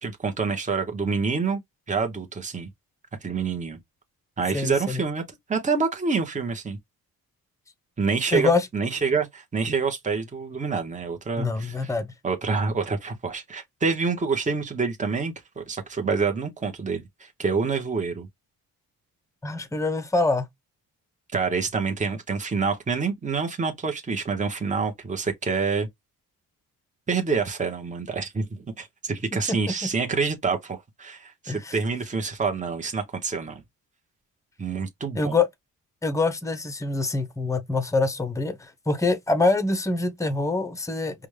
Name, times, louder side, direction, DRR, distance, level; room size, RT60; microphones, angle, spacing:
voice 1, 0.0-1.6 1.9-2.7 3.2-3.8 4.4-5.2 5.5-6.8 8.0-11.9 12.2-18.3 21.3-25.9 27.1-33.6 34.6-35.4, right 4 dB, 20° right, 1.0 m, -27 dB
voice 2, 4.5-5.0 8.3-8.7 11.4-12.1 19.4-20.5 29.5-29.9 31.5-31.8 35.1-35.5 36.0-41.3, left 3 dB, 10° left, 0.8 m, -25 dB
5.0 x 2.4 x 3.2 m
cardioid pair, 95°, 37 cm